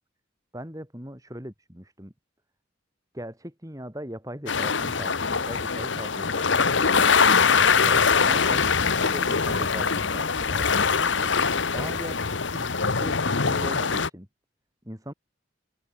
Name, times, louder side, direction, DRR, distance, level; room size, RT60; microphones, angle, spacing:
voice 1, 0.5-2.1 3.1-6.7 7.7-11.3 11.7-12.3 12.5-12.7 13.0-14.3 14.8-15.1, equal, 15° right, 4.6 m, -39 dB
sound 1, 4.5-14.1, left 5 dB, 70° left, 1.2 m, -23 dB
open air
head